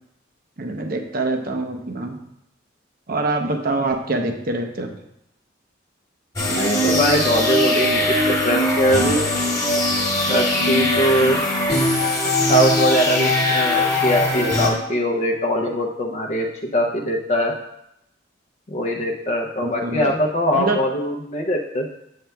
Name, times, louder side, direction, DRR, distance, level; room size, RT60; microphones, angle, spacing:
voice 1, 0.6-2.2 3.1-4.9 19.6-20.1 20.5-20.8, right 2 dB, 50° right, 4 dB, 0.7 m, -25 dB
voice 2, 6.4-9.2 10.3-11.4 12.5-16.5 16.7-17.5 18.7-21.8, equal, 40° left, 0 dB, 0.6 m, -21 dB
sound 1, 6.4-14.7, left 1 dB, 20° left, 1.2 m, -20 dB
7.9 x 7.5 x 2.3 m, 0.80 s
head